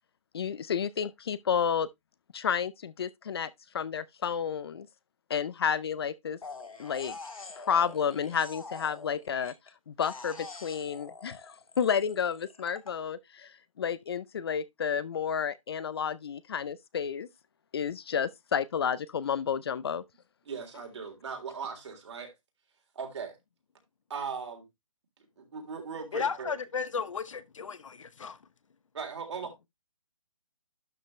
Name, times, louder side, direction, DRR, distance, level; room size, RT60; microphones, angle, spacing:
voice 1, 0.3-1.9 2.3-4.9 5.3-6.4 6.8-7.2 7.6-9.5 9.9-13.5 13.8-17.3 17.7-20.0, left 7 dB, 45° left, 0.5 m, -31 dB
sound 1, 6.4-9.7 10.0-12.9, left 3 dB, 90° left, 2.2 m, -45 dB
voice 2, 20.5-22.3 23.0-23.4 24.1-24.7 25.4-26.5 28.9-29.5, right 5 dB, 60° right, 3.6 m, -38 dB
voice 3, 26.1-28.4, left 6 dB, 70° left, 1.0 m, -34 dB
12.0 x 5.2 x 3.2 m
hypercardioid pair, 155°, 17 cm